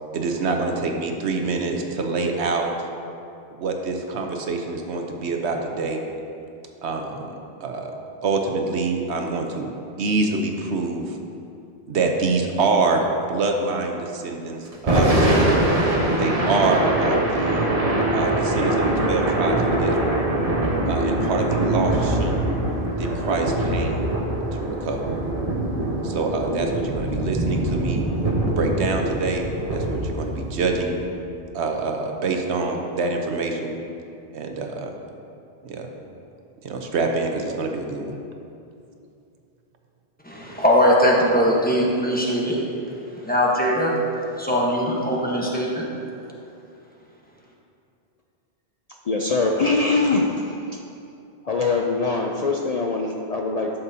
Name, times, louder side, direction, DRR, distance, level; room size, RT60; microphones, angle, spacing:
voice 1, 0.1-2.7 3.5-6.0 6.8-7.3 7.6-8.0 8.2-9.7 10.0-11.2 11.9-13.0 13.3-15.6 16.1-17.7 18.1-20.2 20.9-22.4 23.0-24.0 24.5-25.1 26.0-28.0 28.5-30.9 31.5-33.7 34.3-34.9 35.6-35.9 36.6-38.1, right 3 dB, 85° right, 3 dB, 1.1 m, -26 dB
Thunder / Rain, 14.7-31.0, right 1 dB, 35° right, 1.1 m, -23 dB
voice 2, 40.2-42.6 43.2-43.9 44.4-45.9, equal, 10° left, -4 dB, 1.1 m, -20 dB
voice 3, 49.1-50.8 51.4-53.8, left 3 dB, 50° left, 0 dB, 0.5 m, -23 dB
12.0 x 7.0 x 2.8 m, 2.6 s
omnidirectional pair, 1.1 m